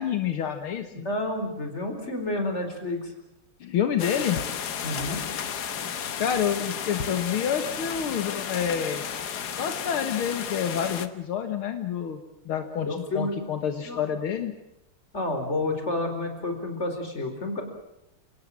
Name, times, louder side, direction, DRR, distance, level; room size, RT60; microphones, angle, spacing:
voice 1, 0.0-0.9 3.6-4.4 6.2-9.0 9.5-12.2 12.5-14.5, left 8 dB, 75° left, 7 dB, 2.3 m, -28 dB
voice 2, 0.9-3.1 4.8-5.2 12.9-13.3 13.8-14.0 15.1-17.6, left 2 dB, 30° left, 5 dB, 4.7 m, -30 dB
atmo bouřka praha parapet okno hrom, 4.0-11.1, left 8 dB, 50° left, 1.6 m, -33 dB
29.0 x 18.5 x 7.5 m, 0.87 s
omnidirectional pair, 2.4 m